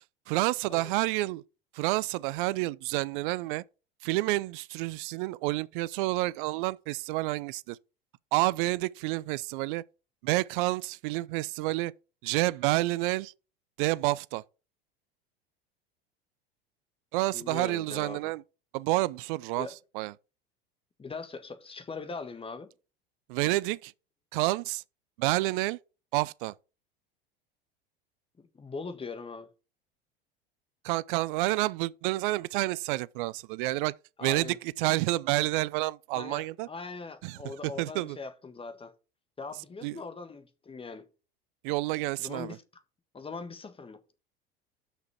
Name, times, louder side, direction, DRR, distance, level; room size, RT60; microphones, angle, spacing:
voice 1, 0.3-1.4 1.7-3.6 4.0-7.8 8.3-9.8 10.2-11.9 12.2-13.3 13.8-14.4 17.1-18.4 18.7-19.7 19.9-20.1 23.3-23.9 24.3-24.8 25.2-25.8 26.1-26.5 30.8-33.9 34.2-36.7 37.2-38.2 39.8-40.0 41.6-42.6, right 20 dB, 60° right, 0.6 m, -29 dB
voice 2, 17.3-18.3 19.6-19.7 21.0-22.7 28.4-29.5 34.2-34.6 36.1-38.9 39.4-41.1 42.2-42.8 43.1-44.0, left 4 dB, 20° left, 1.5 m, -41 dB
6.2 x 5.6 x 7.1 m
hypercardioid pair, 85°, 29 cm